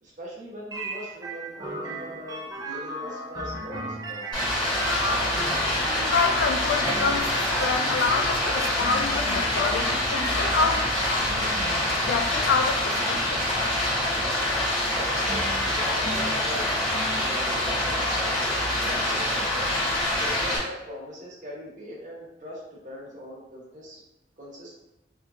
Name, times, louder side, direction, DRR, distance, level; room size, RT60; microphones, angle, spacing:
voice 1, 0.0-4.5 15.0-16.7 17.2-18.0 18.4-19.6 20.2-24.0 24.4-24.7, equal, 45° right, -4 dB, 0.9 m, -41 dB
sound 1, 0.7-19.4, right 1 dB, 20° right, 0.4 m, -37 dB
Stream, 4.3-20.6, left 1 dB, 25° left, 1.5 m, -26 dB
voice 2, 6.0-7.3 7.6-10.9 11.2-11.5 12.0-13.4, left 5 dB, 75° left, 5 dB, 0.3 m, -27 dB
3.3 x 2.8 x 2.4 m, 0.94 s
head